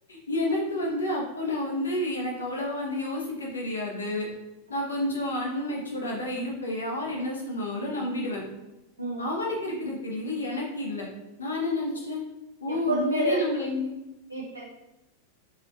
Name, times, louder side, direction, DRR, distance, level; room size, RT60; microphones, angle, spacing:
voice 1, 0.1-4.3 4.7-8.4 9.2-11.1 11.4-12.2 12.6-13.9, left 1 dB, 70° left, -2 dB, 0.7 m, -30 dB
voice 2, 12.7-13.4 14.3-14.7, right 2 dB, 85° right, -3 dB, 0.4 m, -29 dB
3.0 x 2.9 x 2.7 m, 0.96 s
figure-of-eight pair, 90°, 0 cm